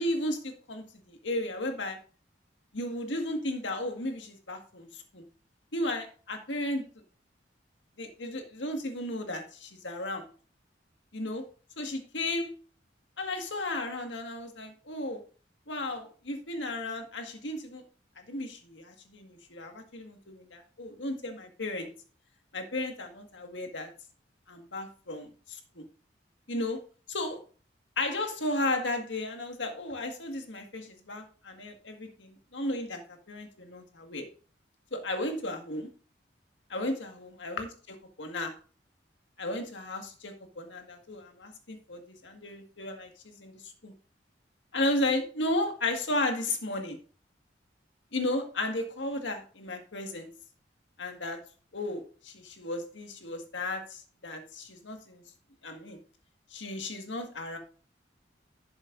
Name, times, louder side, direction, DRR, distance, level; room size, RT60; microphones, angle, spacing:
voice 1, 0.0-2.0 2.7-5.2 5.7-6.9 8.0-10.3 11.1-11.4 11.8-12.5 13.2-15.2 15.7-17.8 18.3-21.9 22.5-23.9 24.5-25.8 26.5-26.8 27.1-27.4 28.0-33.0 33.3-34.3 34.9-35.9 36.7-38.5 39.4-43.9 44.7-47.0 48.1-50.3 51.0-51.4 51.7-55.2 55.6-56.0 56.5-57.6, left 1 dB, 80° left, 5 dB, 1.8 m, -34 dB
11.5 x 7.7 x 2.6 m, 0.39 s
head